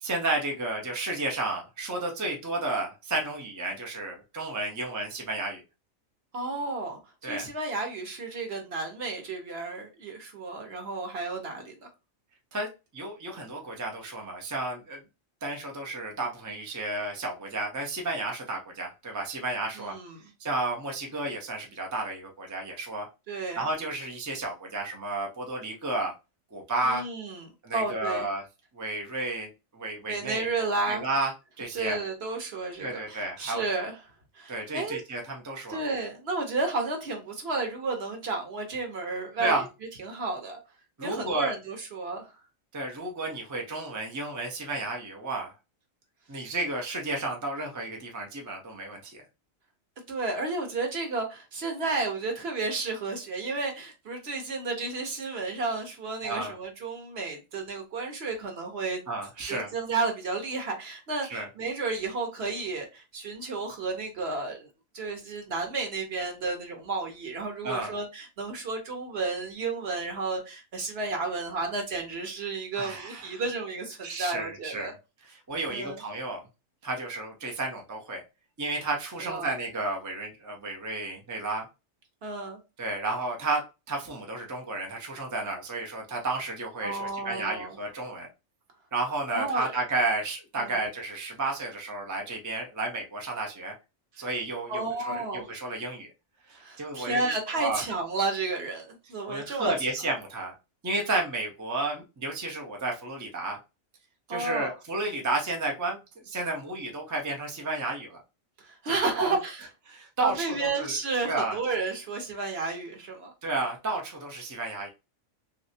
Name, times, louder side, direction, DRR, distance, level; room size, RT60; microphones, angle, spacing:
voice 1, 0.0-5.6 7.2-7.5 12.5-15.0 15.4-20.0 20.4-23.1 23.6-26.1 26.5-27.0 27.6-28.4 28.7-30.5 30.9-31.3 31.6-32.0 32.8-33.7 34.5-35.8 39.4-39.6 41.0-41.5 42.7-45.5 46.3-49.2 56.2-56.6 59.1-59.7 61.3-61.5 67.6-67.9 72.8-73.4 74.0-74.9 75.3-76.5 76.8-78.2 78.6-81.7 82.8-83.6 83.9-88.3 88.9-93.7 94.2-96.1 96.5-97.8 99.3-100.5 100.8-103.6 104.3-108.2 108.9-109.4 109.9-110.9 111.3-111.6 113.4-114.9, right 2 dB, 25° right, 0.4 m, -32 dB
voice 2, 6.3-11.9 19.8-20.2 23.3-23.6 26.8-28.2 30.1-31.0 31.7-33.9 34.3-35.0 35.7-39.6 40.0-40.6 41.0-42.3 50.1-59.0 59.5-64.7 64.9-74.9 75.7-76.0 79.2-79.5 82.2-82.6 86.8-87.8 89.3-89.7 90.6-90.8 94.2-94.3 94.7-95.5 96.6-99.7 104.3-104.7 108.6-109.7 110.2-113.3, right 3 dB, 55° right, 1.0 m, -32 dB
3.1 x 2.7 x 2.7 m
omnidirectional pair, 1.4 m